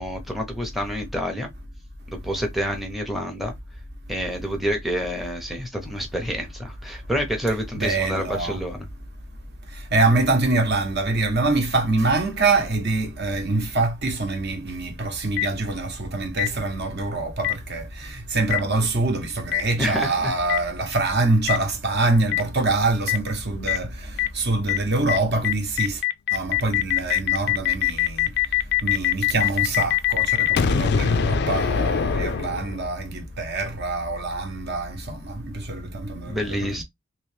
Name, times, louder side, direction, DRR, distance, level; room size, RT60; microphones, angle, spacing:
voice 1, 0.0-1.5 2.1-3.5 4.1-8.9 19.8-20.3 36.3-36.8, equal, ahead, 0.7 m, -28 dB
voice 2, 7.7-8.6 9.7-26.0 26.3-28.3 28.8-36.8, right 2 dB, 50° right, 0.9 m, -25 dB
Boom, 15.4-15.5 16.4-16.5 17.4-17.5 18.5-18.6 19.5-19.6 20.5-20.6 21.5-21.6 22.3-22.4 23.1-23.2 23.7-23.8 24.2-24.3 24.7-24.8 25.1-25.2 25.4-33.0, left 10 dB, 50° left, 0.4 m, -22 dB
3.1 x 3.0 x 3.2 m
head